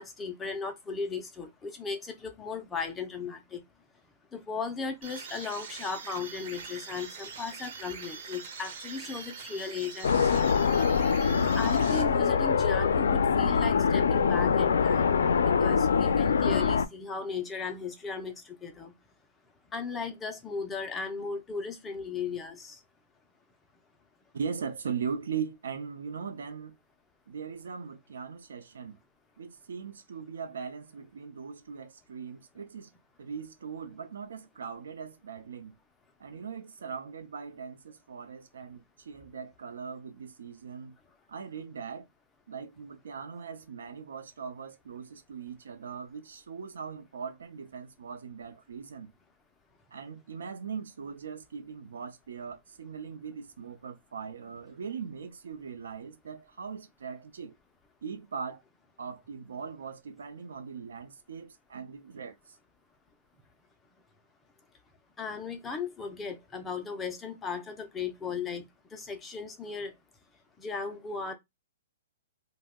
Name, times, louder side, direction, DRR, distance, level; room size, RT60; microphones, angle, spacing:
voice 1, 0.0-3.6 4.3-10.5 11.5-18.9 19.7-22.8 65.2-69.9 70.6-71.3, left 5 dB, 10° left, 0.3 m, -36 dB
sound 1, 5.0-12.5, right 5 dB, 40° right, 0.6 m, -43 dB
sound 2, 10.0-16.9, left 6 dB, 85° left, 0.3 m, -24 dB
voice 2, 24.3-26.8 27.3-29.0 29.4-32.9 33.2-35.7 36.2-41.0 41.3-42.1 42.5-49.1 49.9-57.6 58.0-58.6 59.0-62.6, right 6 dB, 85° right, 0.5 m, -40 dB
2.6 x 2.0 x 3.5 m
hypercardioid pair, 175°, 0 cm